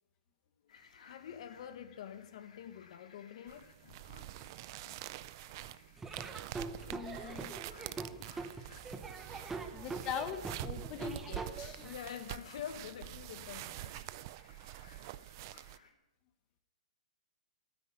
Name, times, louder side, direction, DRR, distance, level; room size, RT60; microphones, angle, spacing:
sound 1, 0.7-15.9, left 5 dB, 70° left, 2.8 m, -62 dB
voice 1, 1.0-4.5 4.8-5.0 6.2-7.3 7.8-8.8 9.3-10.1 10.9-11.0 11.8-14.1, left 9 dB, 55° left, 1.4 m, -49 dB
Leather Rubbing Foley Sound, 3.5-15.8, right 16 dB, 35° right, 0.5 m, -46 dB
Laughter / Drum, 6.0-11.9, right 4 dB, 5° right, 0.8 m, -43 dB
voice 2, 6.8-7.5 9.7-11.9, left 8 dB, 20° left, 1.3 m, -42 dB
13.5 x 9.6 x 9.5 m
hypercardioid pair, 170°, 4 cm